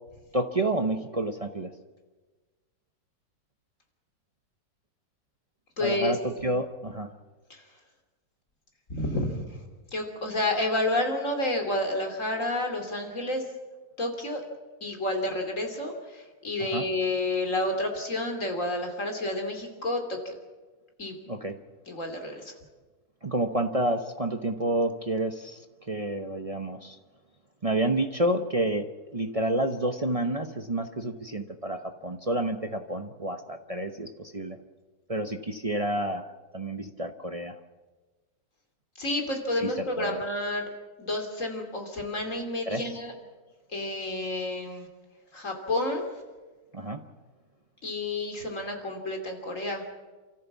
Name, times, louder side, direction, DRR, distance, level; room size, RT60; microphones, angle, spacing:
voice 1, 0.3-1.7 5.8-7.1 16.6-16.8 21.3-21.6 23.2-27.0 27.6-34.6 35.1-37.6 39.6-40.2 42.7-43.0 46.7-47.0, right 1 dB, 35° right, 6 dB, 0.6 m, -29 dB
voice 2, 5.8-6.2 7.5-7.7 8.9-9.6 9.9-13.4 14.0-14.4 14.8-20.3 21.0-21.2 21.9-22.5 39.0-40.6 41.0-43.1 43.7-44.9 45.3-46.1 47.8-49.8, left 1 dB, 40° left, 3 dB, 3.1 m, -30 dB
28.5 x 14.0 x 7.2 m, 1.3 s
omnidirectional pair, 2.0 m